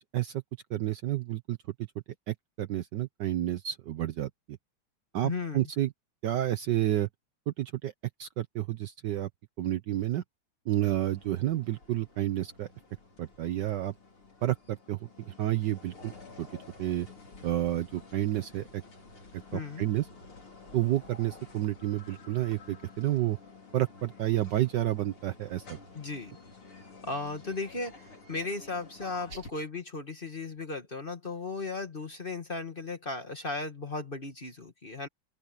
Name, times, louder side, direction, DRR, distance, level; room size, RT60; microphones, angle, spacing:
voice 1, 0.7-1.6 2.3-4.3 5.1-5.9 6.2-7.1 7.5-7.9 8.2-9.3 9.6-10.2 10.7-12.7 13.2-13.9 14.4-15.0 15.4-16.1 16.4-16.5 16.8-17.1 17.4-18.8 19.3-20.0 20.7-23.4 23.7-25.8, right 13 dB, 65° right, 1.2 m, -30 dB
voice 2, 5.2-5.7 19.5-19.9 25.9-26.3 27.0-35.1, left 3 dB, 25° left, 1.5 m, -36 dB
sound 1, 10.7-29.5, left 3 dB, 85° left, 6.0 m, -51 dB
open air
omnidirectional pair, 2.4 m